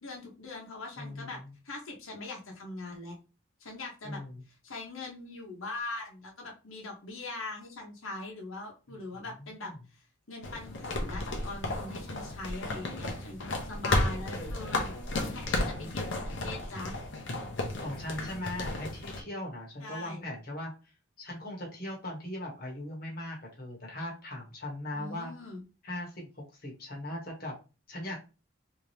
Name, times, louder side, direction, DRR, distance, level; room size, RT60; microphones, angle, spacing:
voice 1, 0.0-1.4 1.6-3.2 3.6-4.2 4.6-17.0 19.8-20.2 24.9-25.6, left 2 dB, 85° left, 0 dB, 1.1 m, -41 dB
voice 2, 1.0-1.5 4.0-4.4 8.9-9.0 9.4-9.8 17.8-20.7 21.2-25.3 25.8-27.5 27.9-28.2, left 1 dB, 45° left, -1 dB, 1.3 m, -39 dB
sound 1, 10.4-19.2, left 2 dB, 65° left, 0.9 m, -33 dB
3.5 x 2.9 x 3.3 m, 0.31 s
head